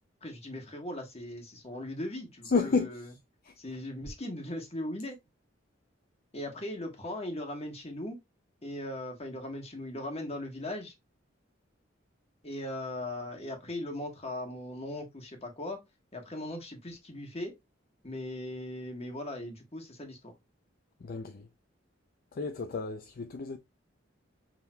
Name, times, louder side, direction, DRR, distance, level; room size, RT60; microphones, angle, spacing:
voice 1, 0.2-3.1 3.6-5.2 6.3-8.2 8.6-10.9 12.4-15.8 16.1-17.5 18.0-20.3, left 1 dB, 35° left, 1.3 m, -38 dB
voice 2, 2.5-2.9 3.4-3.5 21.0-21.5 22.3-23.6, left 4 dB, 50° left, 0.4 m, -31 dB
5.9 x 3.6 x 2.2 m
head